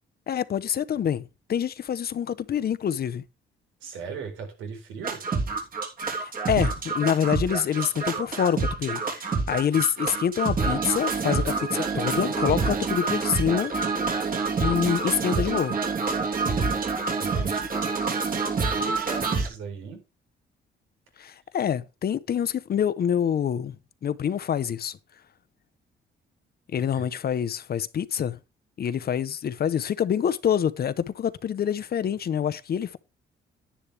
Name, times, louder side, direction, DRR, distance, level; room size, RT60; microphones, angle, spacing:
voice 1, 0.3-3.2 6.1-13.7 14.6-15.8 21.2-23.8 24.0-25.0 26.7-28.4 28.8-33.0, left 8 dB, 50° left, 0.8 m, -26 dB
voice 2, 3.8-5.2 17.2-17.7 18.6-20.0 26.9-27.1, right 6 dB, 90° right, 4.2 m, -38 dB
sound 1, 5.0-19.5, right 4 dB, 45° right, 3.2 m, -27 dB
10.0 x 9.9 x 3.4 m
cardioid pair, 90°, 20 cm